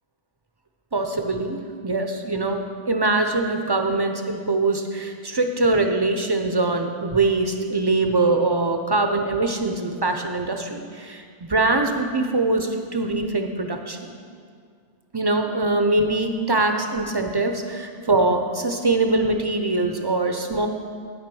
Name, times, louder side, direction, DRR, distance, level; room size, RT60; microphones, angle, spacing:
voice 1, 0.9-14.2 15.1-20.7, right 2 dB, 30° right, 5 dB, 0.5 m, -23 dB
9.7 x 6.1 x 6.2 m, 2.1 s
omnidirectional pair, 1.1 m